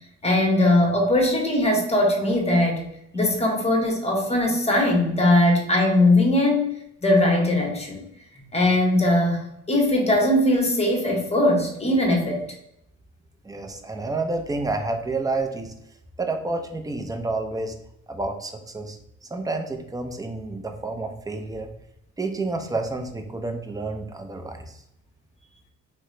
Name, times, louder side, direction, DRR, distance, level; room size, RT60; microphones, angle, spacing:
voice 1, 0.2-2.9 3.1-6.7 7.0-8.0 8.5-12.4, left 1 dB, 20° left, 1 dB, 1.0 m, -20 dB
voice 2, 13.4-15.7 16.2-17.7 18.1-21.7 22.2-24.8, right 3 dB, 10° right, 4 dB, 0.5 m, -29 dB
2.9 x 2.1 x 3.8 m, 0.77 s
cardioid pair, 90°, 30 cm